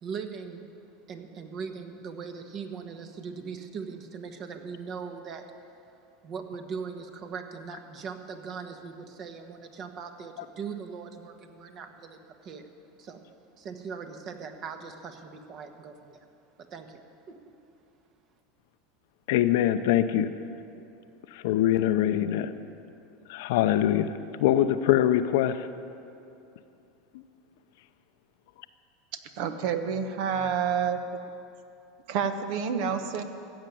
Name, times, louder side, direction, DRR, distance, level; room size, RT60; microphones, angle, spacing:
voice 1, 0.0-0.7 1.1-5.4 6.2-12.7 13.0-13.2 13.6-16.2 16.7-17.4, right 6 dB, 45° right, 6 dB, 1.4 m, -40 dB
voice 2, 19.3-20.4 21.3-22.5 23.3-25.7 27.1-27.2, left 12 dB, 75° left, 10 dB, 0.7 m, -24 dB
voice 3, 29.4-31.0 32.1-33.2, right 7 dB, 65° right, 8 dB, 1.1 m, -28 dB
15.0 x 7.3 x 9.3 m, 2.7 s
supercardioid pair, 110°, 0 cm